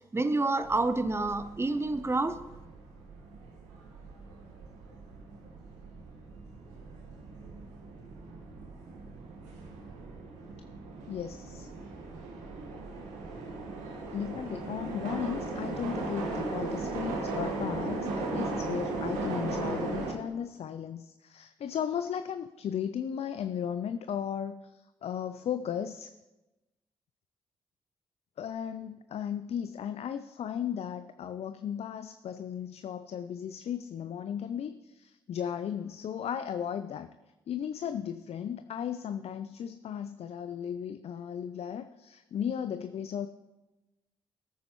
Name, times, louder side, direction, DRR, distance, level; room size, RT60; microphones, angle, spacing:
voice 1, 0.0-2.4, right 2 dB, 20° right, 0.9 m, -28 dB
sound 1, 0.6-20.1, right 3 dB, 80° right, 1.5 m, -38 dB
voice 2, 11.1-11.7 14.1-26.1 28.4-37.1 37.5-43.3, left 8 dB, 55° left, 0.5 m, -36 dB
18.0 x 9.4 x 3.1 m
hypercardioid pair, 45°, 12 cm